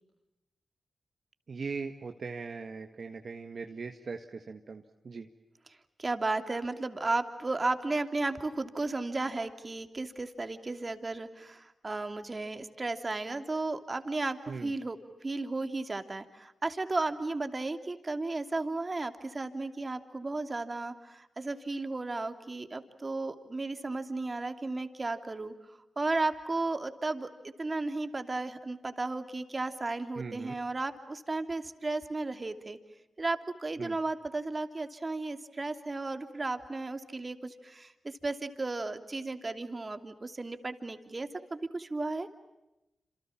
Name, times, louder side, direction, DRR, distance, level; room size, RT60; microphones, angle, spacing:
voice 1, 1.5-5.3 14.5-14.7 30.1-30.6 33.8-34.0, right 4 dB, 60° right, 5 dB, 1.7 m, -40 dB
voice 2, 6.0-25.5 26.0-32.8 33.2-42.3, right 3 dB, 40° right, 8 dB, 2.9 m, -34 dB
28.0 x 27.5 x 7.3 m, 0.96 s
supercardioid pair, 40°, 0 cm